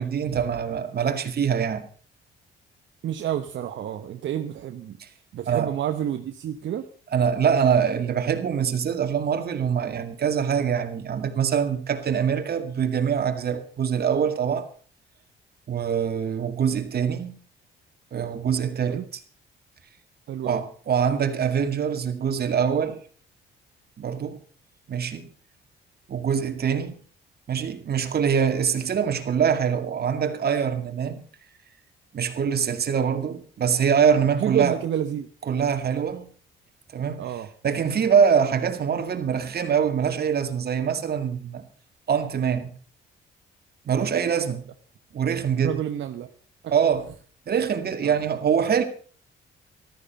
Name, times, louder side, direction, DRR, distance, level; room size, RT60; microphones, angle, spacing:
voice 1, 0.0-1.9 5.0-5.1 5.5-5.7 7.1-14.7 15.7-17.4 18.1-19.2 20.4-23.0 24.0-24.4 24.9-25.3 26.1-27.0 27.5-31.2 32.1-34.8 35.5-36.3 36.9-37.3 37.6-41.6 42.1-42.7 43.9-44.6 45.1-45.8 46.7-47.1 47.5-48.8, right 7 dB, 50° right, 2.2 m, -24 dB
voice 2, 3.0-5.0 5.3-6.9 18.8-19.0 20.3-20.6 34.4-35.3 37.2-37.5 45.6-46.3 46.6-46.7 48.0-48.2, right 10 dB, 70° right, 1.1 m, -29 dB
14.0 x 13.0 x 5.5 m
cardioid pair, 90°, 20 cm